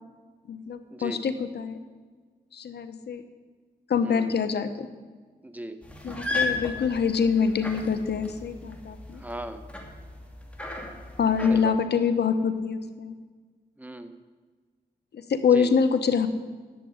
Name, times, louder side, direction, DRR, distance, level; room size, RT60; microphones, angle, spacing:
voice 1, 0.5-1.8 2.5-3.2 3.9-4.9 6.0-9.2 11.2-13.2 15.1-16.3, left 6 dB, 85° left, 10 dB, 0.9 m, -25 dB
voice 2, 5.4-5.8 9.2-9.6 11.5-11.8 13.8-14.1 15.5-15.7, right 1 dB, 10° right, 8 dB, 1.1 m, -37 dB
sound 1, 5.8-11.6, left 3 dB, 5° left, 2.6 m, -35 dB
11.0 x 7.5 x 9.6 m, 1.4 s
cardioid pair, 70°, 17 cm